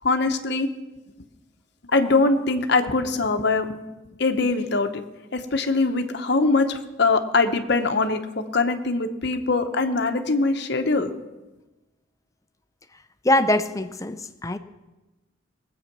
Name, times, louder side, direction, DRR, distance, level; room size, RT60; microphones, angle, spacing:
voice 1, 0.0-0.7 1.9-3.8 4.2-5.0 5.3-11.1, left 3 dB, 55° left, 6 dB, 0.9 m, -22 dB
voice 2, 13.2-14.6, left 1 dB, 15° left, 11 dB, 0.5 m, -22 dB
19.5 x 8.1 x 6.0 m, 1.1 s
head